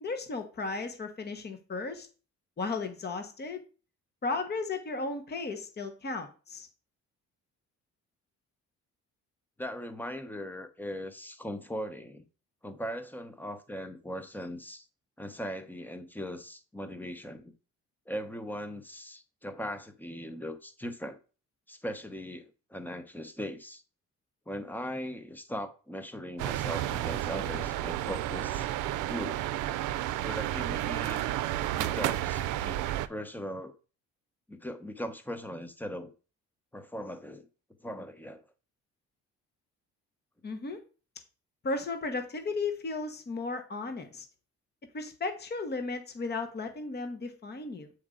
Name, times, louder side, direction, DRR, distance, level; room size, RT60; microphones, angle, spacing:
voice 1, 0.0-2.1 2.6-3.6 4.2-6.7 40.4-40.8 41.6-44.2 44.9-47.9, left 3 dB, 35° left, 1.1 m, -35 dB
voice 2, 9.6-12.2 12.6-14.9 15.2-17.5 18.1-21.2 21.7-23.8 24.5-29.4 30.2-31.3 31.8-33.7 34.5-36.1 36.7-37.5 37.8-38.4, equal, 5° left, 0.9 m, -39 dB
sound 1, 26.4-33.1, right 13 dB, 85° right, 0.5 m, -31 dB
7.1 x 4.7 x 3.8 m
cardioid pair, 90°, 30 cm